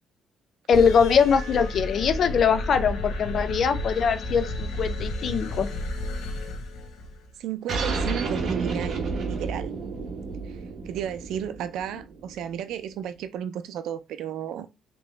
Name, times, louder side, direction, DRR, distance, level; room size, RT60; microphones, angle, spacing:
sound 1, 0.7-7.3, left 1 dB, 85° left, 0.9 m, -32 dB
voice 1, 0.7-5.7, left 6 dB, 60° left, 0.5 m, -22 dB
voice 2, 7.4-9.7 10.4-10.6 10.9-14.7, right 9 dB, 85° right, 0.4 m, -33 dB
sound 2, 7.7-12.7, right 4 dB, 60° right, 0.9 m, -31 dB
3.5 x 3.0 x 3.1 m
cardioid pair, 90°, 0 cm